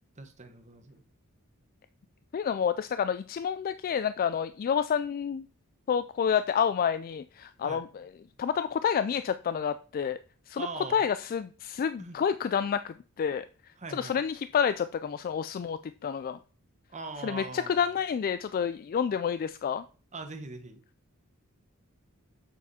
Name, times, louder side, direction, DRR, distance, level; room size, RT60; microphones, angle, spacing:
voice 1, 0.2-1.0 7.6-7.8 10.6-11.1 12.0-12.2 13.8-14.2 16.9-17.9 20.1-20.8, right 3 dB, 35° right, 7 dB, 1.2 m, -41 dB
voice 2, 2.3-5.5 5.9-8.1 8.4-10.2 10.5-13.5 13.9-16.4 17.2-19.8, left 7 dB, 40° left, 12 dB, 0.3 m, -29 dB
7.3 x 7.0 x 4.2 m, 0.40 s
head